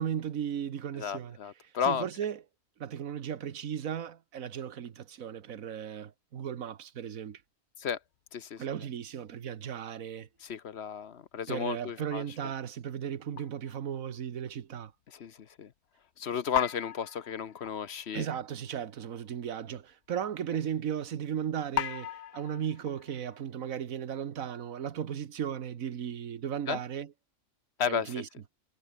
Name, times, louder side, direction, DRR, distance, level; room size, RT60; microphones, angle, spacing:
voice 1, 0.0-1.4 1.8-2.4 2.8-7.4 8.6-10.3 11.5-14.9 18.1-27.1 27.9-28.3, right 8 dB, 85° right, 1.5 m, -36 dB
voice 2, 1.0-2.1 7.8-8.0 8.3-8.6 10.4-12.2 15.1-15.7 16.2-18.2 26.7-26.8 27.8-28.1, left 7 dB, 55° left, 1.1 m, -33 dB
sound 1, 13.4-13.9 14.5-14.6 16.5-18.3 18.7-18.8 19.0-19.2 19.9-20.0 21.7-23.4, left 11 dB, 85° left, 1.2 m, -38 dB
omnidirectional pair, 1.4 m